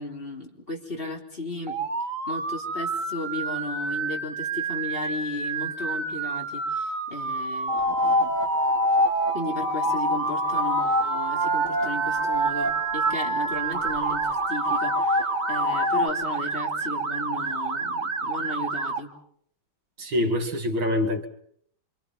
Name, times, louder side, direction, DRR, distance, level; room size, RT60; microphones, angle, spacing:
voice 1, 0.0-1.8 2.3-8.4 9.3-19.1, left 2 dB, 30° left, 1 dB, 3.8 m, -35 dB
Motor vehicle (road) / Siren, 1.7-19.0, right 4 dB, 45° right, 2.2 m, -30 dB
sound 1, 7.7-16.1, equal, 25° right, 3.1 m, -26 dB
voice 2, 20.0-21.3, left 1 dB, 75° right, 4 dB, 3.2 m, -25 dB
26.5 x 26.5 x 5.7 m, 0.65 s
omnidirectional pair, 2.1 m